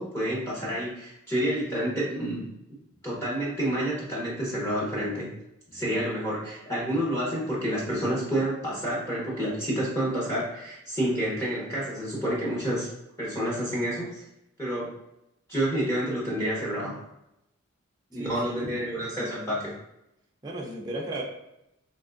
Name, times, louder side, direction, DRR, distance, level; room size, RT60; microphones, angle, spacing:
voice 1, 0.0-2.5 3.0-5.3 5.7-12.9 13.2-14.2 14.6-14.9 15.5-17.0 18.1-19.7, right 1 dB, 10° left, -7 dB, 0.8 m, -29 dB
voice 2, 18.1-18.6 18.9-19.8 20.4-21.2, right 2 dB, 20° right, -2 dB, 0.5 m, -36 dB
3.3 x 2.8 x 2.5 m, 0.83 s
head